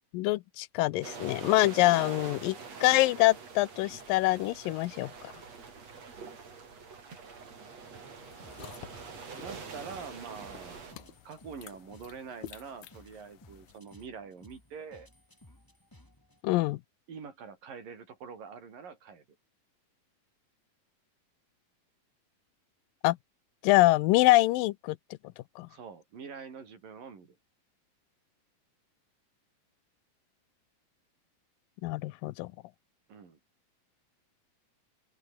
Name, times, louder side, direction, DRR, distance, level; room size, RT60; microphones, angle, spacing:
voice 1, 0.1-5.1 16.4-16.8 23.0-23.2 23.6-25.0 25.6-25.7 31.8-32.5, left 19 dB, 90° left, 2.4 m, -25 dB
sound 1, 1.0-10.9, right 5 dB, 50° right, 5.2 m, -45 dB
voice 2, 5.9-6.7 9.4-15.1 17.1-19.3 25.7-27.4 33.1-33.4, right 6 dB, 80° right, 6.4 m, -45 dB
sound 2, 8.2-13.8, left 12 dB, 65° left, 2.4 m, -51 dB
sound 3, 8.4-16.4, left 1 dB, 5° left, 2.6 m, -58 dB
open air
omnidirectional pair, 3.9 m